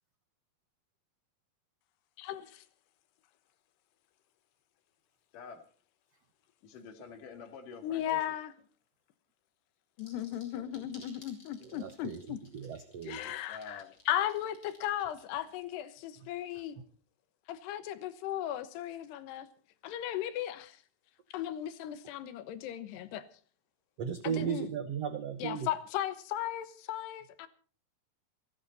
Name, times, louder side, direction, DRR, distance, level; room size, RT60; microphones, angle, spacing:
voice 1, 2.2-2.6 7.8-8.5 10.0-12.4 13.0-16.8 17.5-19.5 19.8-20.8 21.3-23.2 24.2-24.7 25.4-27.5, left 12 dB, 90° left, 3.3 m, -36 dB
voice 2, 6.6-8.2 10.5-11.0 13.5-13.9, left 5 dB, 60° left, 3.3 m, -48 dB
sound 1, 10.0-15.5, left 2 dB, 20° left, 5.1 m, -57 dB
voice 3, 11.6-12.2 12.5-13.3 24.0-25.7, right 8 dB, 90° right, 1.4 m, -36 dB
28.0 x 10.5 x 4.1 m
omnidirectional pair, 4.6 m